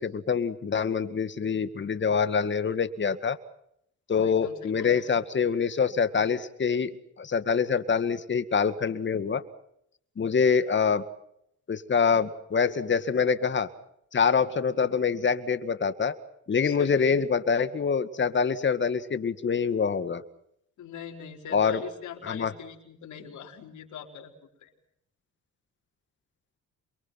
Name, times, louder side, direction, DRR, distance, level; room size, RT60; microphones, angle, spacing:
voice 1, 0.0-3.4 4.1-9.4 10.2-11.0 11.7-13.7 14.1-16.2 16.5-20.2 21.5-21.8 22.2-22.5, left 6 dB, 40° left, 11 dB, 2.0 m, -25 dB
voice 2, 4.1-5.1 16.6-17.1 20.8-24.3 24.6-24.7, left 8 dB, 75° left, 3 dB, 4.9 m, -42 dB
27.5 x 23.5 x 5.9 m, 0.73 s
cardioid pair, 90°, 30 cm